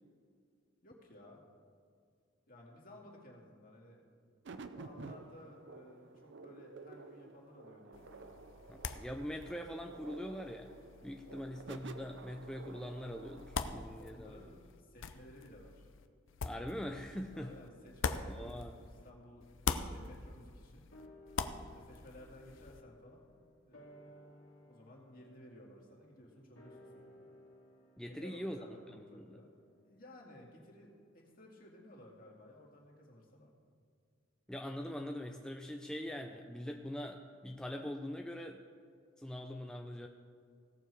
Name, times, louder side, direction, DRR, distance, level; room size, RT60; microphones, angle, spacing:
voice 1, 0.8-1.4 2.5-4.2 4.7-8.3 11.3-11.4 14.0-15.8 17.3-20.9 21.7-23.3 23.7-24.3 24.6-27.3 28.0-29.5 29.8-33.5, left 1 dB, 45° left, -2 dB, 2.3 m, -56 dB
sound 1, 4.4-13.9, right 3 dB, 65° right, 0.6 m, -52 dB
sound 2, 7.9-19.1 19.4-22.8, left 5 dB, 70° left, 0.6 m, -44 dB
voice 2, 8.7-10.7 11.0-14.5 16.4-17.5 18.3-18.7 28.0-28.6 28.9-29.4 34.5-38.6 39.2-40.1, equal, 5° left, 3 dB, 0.4 m, -43 dB
sound 3, 20.9-31.5 31.8-31.9, left 1 dB, 85° left, 2.2 m, -60 dB
17.0 x 6.9 x 4.7 m, 2.2 s
head